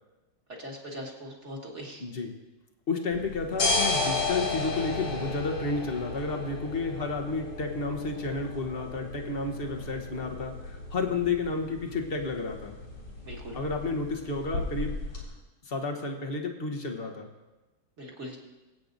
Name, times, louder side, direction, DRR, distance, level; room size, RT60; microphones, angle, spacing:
voice 1, 0.6-2.0 13.2-13.6 18.0-18.4, equal, 35° right, -1 dB, 1.8 m, -40 dB
voice 2, 2.0-2.3 2.9-12.8 13.5-15.0 15.6-17.3, left 3 dB, 45° left, 3 dB, 0.8 m, -31 dB
sound 1, 3.1-15.2, left 3 dB, 90° left, 4.1 m, -34 dB
23.0 x 8.6 x 2.6 m, 1.1 s
omnidirectional pair, 2.4 m